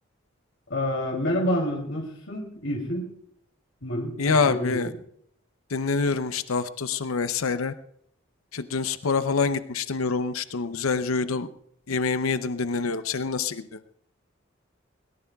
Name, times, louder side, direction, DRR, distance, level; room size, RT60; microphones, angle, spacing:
voice 1, 0.7-3.1 3.8-4.8, equal, 70° left, -1 dB, 2.9 m, -28 dB
voice 2, 4.2-4.9 5.7-7.7 8.5-11.5 11.9-13.8, left 4 dB, 85° left, 11 dB, 0.7 m, -26 dB
22.0 x 18.0 x 2.3 m, 0.69 s
head